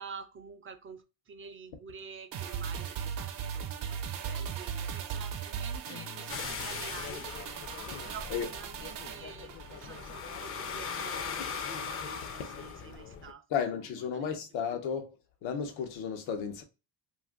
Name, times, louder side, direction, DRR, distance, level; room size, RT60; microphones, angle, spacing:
voice 1, 0.0-7.3 8.0-13.7 14.1-14.3, right 6 dB, 30° right, 0.4 m, -48 dB
sound 1, 2.3-10.9 11.2-11.3, right 7 dB, 70° right, 0.7 m, -39 dB
sound 2, 5.9-7.6, left 6 dB, 60° left, 0.8 m, -50 dB
sound 3, 6.3-13.3, left 6 dB, 30° left, 0.4 m, -39 dB
voice 2, 13.5-15.1 15.4-16.6, left 7 dB, 90° left, 0.8 m, -33 dB
2.6 x 2.5 x 3.5 m
cardioid pair, 100°, 44 cm